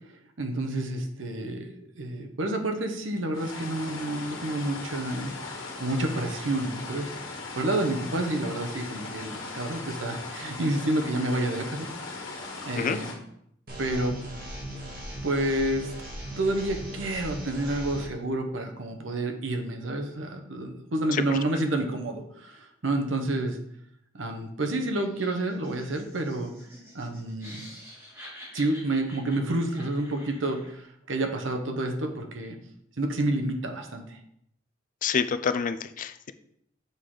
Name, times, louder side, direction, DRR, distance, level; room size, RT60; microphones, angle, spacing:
voice 1, 0.1-1.7 2.0-5.3 5.8-7.1 7.5-11.9 12.6-13.1 13.8-14.2 15.2-15.9 16.4-23.6 24.1-26.5 26.9-27.6 28.5-32.6 33.0-34.2, right 1 dB, 75° right, 4 dB, 0.9 m, -29 dB
sound 1, 3.3-13.1, left 3 dB, 90° left, 1.4 m, -39 dB
sound 2, 13.7-18.1, equal, 50° right, 1.9 m, -38 dB
Laughter, 25.0-30.8, equal, 10° right, 2.3 m, -48 dB
voice 2, 35.0-36.3, left 6 dB, 45° left, 12 dB, 0.4 m, -28 dB
6.6 x 4.8 x 3.8 m, 0.73 s
head